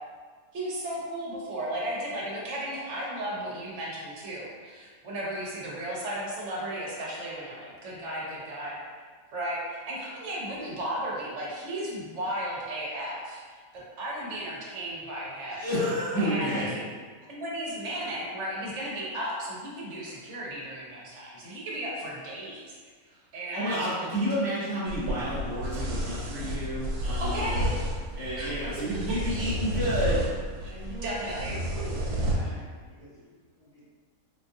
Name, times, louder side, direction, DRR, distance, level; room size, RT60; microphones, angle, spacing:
voice 1, 0.5-8.8 9.3-15.6 16.2-16.8 17.3-22.8 23.3-23.8 27.2-27.8 28.4-28.5 31.0-31.6, right 1 dB, 60° right, -4 dB, 1.0 m, -35 dB
voice 2, 15.5-16.8 23.1-23.2 23.5-27.7 28.1-30.3, equal, 25° left, -11 dB, 0.5 m, -30 dB
sound 1, 24.9-32.3, equal, 85° right, 1.1 m, -31 dB
voice 3, 30.7-33.8, equal, 75° left, -16 dB, 1.6 m, -44 dB
3.8 x 2.4 x 2.6 m, 1.5 s
omnidirectional pair, 1.5 m